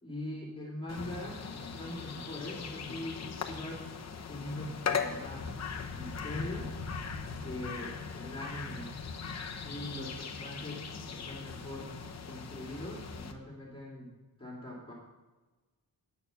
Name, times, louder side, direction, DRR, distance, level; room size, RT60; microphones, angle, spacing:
voice 1, 0.0-3.8 4.3-5.5 6.0-6.7 7.4-8.9 9.5-10.8 11.1-11.9 12.3-14.1 14.4-14.9, left 1 dB, 15° left, -6 dB, 2.4 m, -42 dB
sound 1, 0.9-13.3, left 5 dB, 40° left, 0.9 m, -39 dB
9.6 x 6.8 x 6.8 m, 1.2 s
wide cardioid pair, 145°, 41 cm